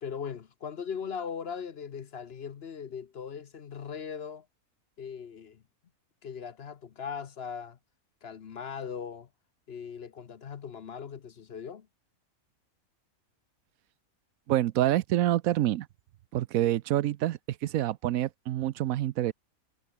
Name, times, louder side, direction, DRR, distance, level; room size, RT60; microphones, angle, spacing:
voice 1, 0.0-4.5 5.0-5.6 6.2-7.8 8.2-9.3 9.7-11.9, left 7 dB, 50° left, 1.0 m, -39 dB
voice 2, 14.5-15.9 16.3-19.3, right 13 dB, 80° right, 1.0 m, -27 dB
omnidirectional pair, 1.5 m